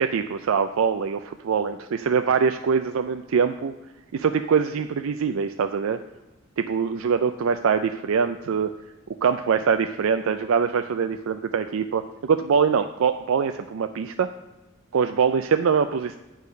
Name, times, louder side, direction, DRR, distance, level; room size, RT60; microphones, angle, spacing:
voice 1, 0.0-3.7 4.1-6.0 6.6-8.7 9.2-14.3 14.9-16.2, right 6 dB, 70° right, 8 dB, 0.4 m, -23 dB
8.4 x 4.9 x 6.7 m, 1.0 s
head